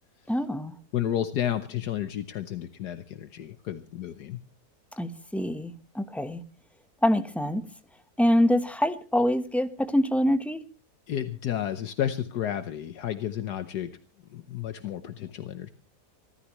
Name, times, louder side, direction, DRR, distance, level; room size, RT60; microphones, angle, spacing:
voice 1, 0.3-0.7 5.0-6.4 7.0-7.6 8.2-10.6, equal, ahead, 0.8 m, -25 dB
voice 2, 0.9-4.4 11.1-13.9 14.3-15.7, left 10 dB, 75° left, 1.5 m, -31 dB
26.5 x 13.5 x 3.1 m
omnidirectional pair, 1.8 m